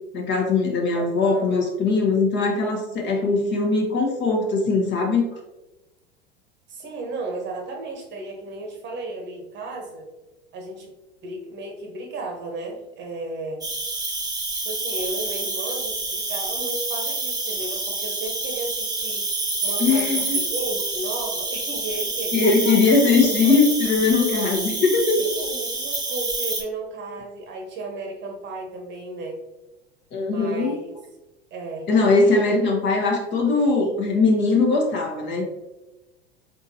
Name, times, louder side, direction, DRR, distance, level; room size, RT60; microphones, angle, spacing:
voice 1, 0.1-5.3 19.8-20.4 22.3-25.2 30.1-30.7 31.9-35.5, left 4 dB, 35° left, 0 dB, 1.0 m, -20 dB
voice 2, 0.9-1.5 6.7-10.1 10.5-10.9 11.2-13.7 14.5-23.3 25.1-29.4 30.3-30.9 31.5-31.9, right 2 dB, 35° right, 1 dB, 1.0 m, -34 dB
Cricket, 13.6-26.6, right 3 dB, 10° right, 1.0 m, -28 dB
4.1 x 3.6 x 2.7 m, 1.0 s
figure-of-eight pair, 85°, 33 cm